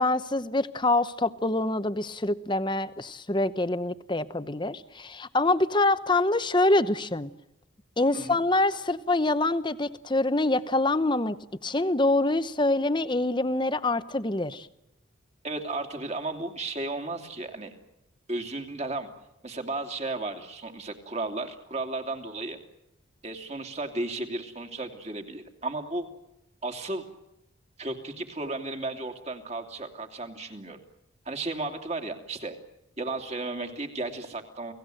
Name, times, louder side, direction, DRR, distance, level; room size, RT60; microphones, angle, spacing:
voice 1, 0.0-7.3 8.0-11.4 11.6-14.7, left 2 dB, 20° left, 0.9 m, -25 dB
voice 2, 8.1-8.4 15.4-17.7 18.3-19.1 19.4-22.6 23.2-26.1 26.6-27.0 27.8-30.8 31.2-32.6 33.0-34.7, right 2 dB, 30° right, 2.7 m, -34 dB
30.0 x 18.5 x 7.8 m
head